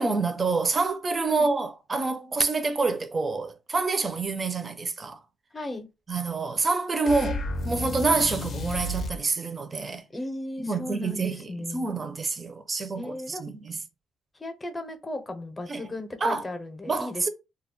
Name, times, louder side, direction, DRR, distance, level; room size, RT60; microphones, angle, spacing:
voice 1, 0.0-5.2 6.1-10.0 10.6-13.8 15.7-15.8 16.2-16.4 16.9-17.3, right 3 dB, 35° right, 0.5 m, -27 dB
voice 2, 5.5-5.9 10.1-11.9 13.0-13.4 14.4-17.3, left 1 dB, 20° left, 0.7 m, -36 dB
sound 1, 7.0-9.2, left 2 dB, 55° left, 0.5 m, -32 dB
2.3 x 2.1 x 3.7 m
cardioid pair, 90°, 0 cm